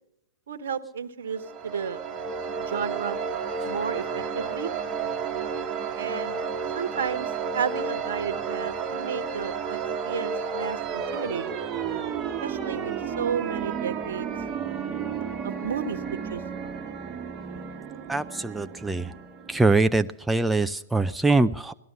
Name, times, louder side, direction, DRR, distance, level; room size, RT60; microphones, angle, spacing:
voice 1, 0.5-2.0 2.6-3.2 3.7-4.7 6.0-6.4 6.7-9.8 10.0-11.6 12.4-14.3 15.4-16.0 16.2-16.7, right 7 dB, 65° right, 14 dB, 1.2 m, -32 dB
sound 1, 1.3-19.9, right 6 dB, 25° right, 1.4 m, -32 dB
voice 2, 18.1-19.1 19.5-21.7, right 3 dB, 5° right, 9 dB, 0.5 m, -23 dB
18.0 x 12.5 x 6.5 m, 0.83 s
figure-of-eight pair, 110°, 0 cm